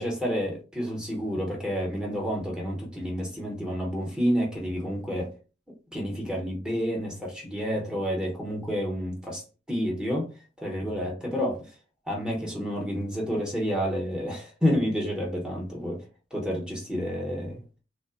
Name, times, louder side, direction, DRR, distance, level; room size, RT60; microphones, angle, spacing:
voice 1, 0.0-5.3 5.9-10.3 10.6-11.7 12.1-16.0 16.3-17.6, equal, 5° right, 0.7 m, -29 dB
2.9 x 2.1 x 2.3 m
head